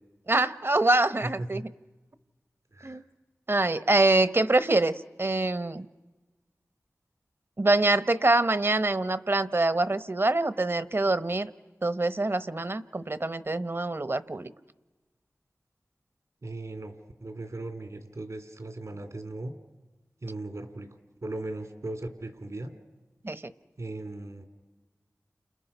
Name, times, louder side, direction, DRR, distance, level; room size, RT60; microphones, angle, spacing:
voice 1, 0.3-1.6 2.8-3.0 3.5-5.9 7.6-11.5 11.8-14.5 23.2-23.5, right 2 dB, 45° right, 14 dB, 1.0 m, -25 dB
voice 2, 1.2-1.6 2.7-3.0 16.4-16.9 17.2-19.6 20.2-22.7 23.8-24.4, right 2 dB, 70° right, 6 dB, 2.7 m, -38 dB
30.0 x 27.5 x 5.6 m, 1.2 s
wide cardioid pair, 45°, 6 cm